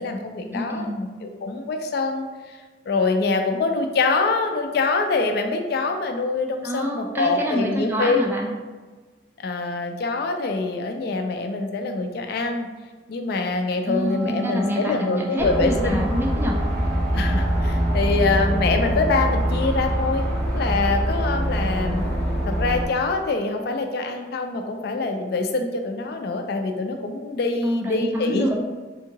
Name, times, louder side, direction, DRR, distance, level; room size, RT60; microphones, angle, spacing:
voice 1, 0.0-2.6 2.9-8.2 9.4-12.7 13.1-16.1 17.1-22.0 22.4-28.6, left 3 dB, 60° left, 5 dB, 0.3 m, -25 dB
voice 2, 0.5-1.0 6.6-8.5 13.9-16.6 27.6-28.6, equal, 15° right, -1 dB, 0.4 m, -27 dB
Wind instrument woodwind instrument, 14.0-20.1, right 4 dB, 85° right, 0.8 m, -40 dB
sound 1, 15.4-22.9, equal, 70° right, 1.5 m, -24 dB
3.4 x 2.8 x 2.8 m, 1.4 s
head